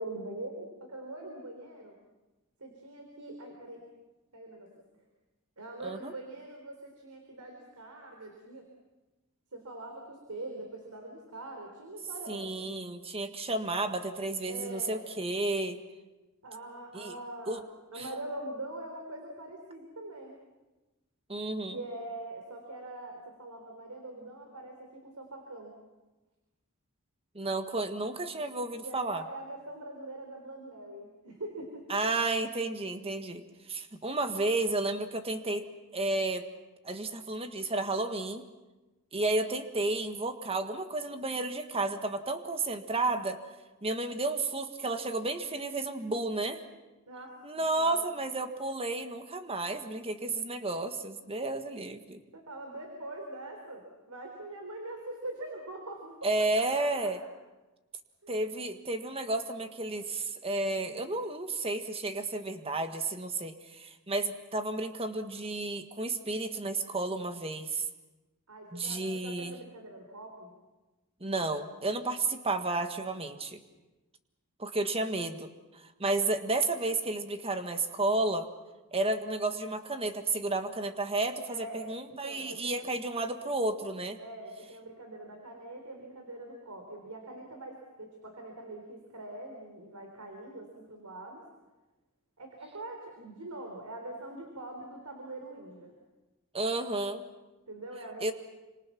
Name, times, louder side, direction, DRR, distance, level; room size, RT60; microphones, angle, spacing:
voice 1, 0.0-2.0 2.6-3.8 4.3-4.7 5.6-8.6 9.5-12.7 14.5-15.0 16.4-17.6 17.9-20.4 21.7-25.8 28.8-32.0 47.1-47.4 47.8-48.1 52.3-57.3 58.2-58.4 68.5-70.5 81.5-82.9 84.2-91.4 92.4-95.9 97.7-98.3, right 2 dB, 85° right, 2 dB, 4.0 m, -43 dB
voice 2, 12.3-15.8 16.9-17.1 17.5-17.6 18.0-18.1 21.3-21.8 27.3-29.2 31.9-35.6 35.9-36.4 36.8-38.4 39.1-43.4 43.8-46.6 47.4-52.2 56.2-57.2 58.3-67.8 68.7-69.5 71.2-73.6 74.6-78.5 78.9-84.2 96.5-97.2 98.2-98.3, right 2 dB, 25° right, 7 dB, 1.6 m, -32 dB
28.0 x 26.0 x 6.0 m, 1.1 s
head